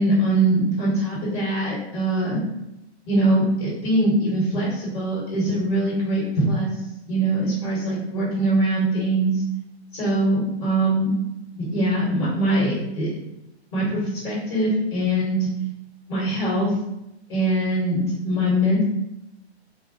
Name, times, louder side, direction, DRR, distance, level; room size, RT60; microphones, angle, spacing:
voice 1, 0.0-2.4 3.1-6.7 7.1-9.4 9.9-11.1 11.5-13.1 13.7-15.5 16.1-16.7 17.3-18.8, right 1 dB, 45° left, -7 dB, 1.3 m, -22 dB
3.3 x 2.1 x 2.8 m, 0.87 s
figure-of-eight pair, 120°, 33 cm